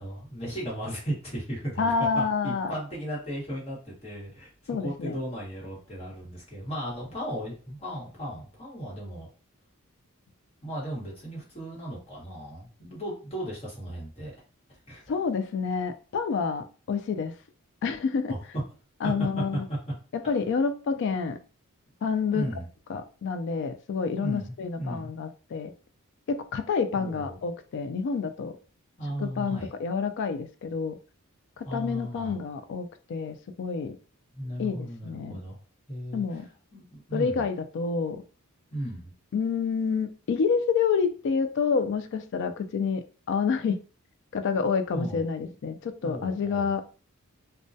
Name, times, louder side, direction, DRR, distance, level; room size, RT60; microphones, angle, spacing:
voice 1, 0.0-9.3 10.6-14.3 14.9-15.0 18.3-18.4 19.0-19.8 22.3-22.7 24.2-25.1 26.9-27.4 29.0-29.7 31.6-32.4 34.3-35.6 35.9-36.4 36.7-37.5 38.7-39.1 44.9-45.2 46.0-46.7, equal, 30° left, -5 dB, 1.2 m, -35 dB
voice 2, 1.8-2.7 4.7-5.2 15.1-17.3 17.8-18.3 19.0-19.7 20.1-21.4 22.0-22.4 22.9-25.7 26.3-28.6 29.2-31.0 31.6-34.0 34.6-35.4 36.1-36.5 37.1-38.2 39.3-43.8 44.3-46.8, left 5 dB, 55° left, 9 dB, 0.3 m, -28 dB
2.2 x 2.2 x 2.6 m, 0.36 s
head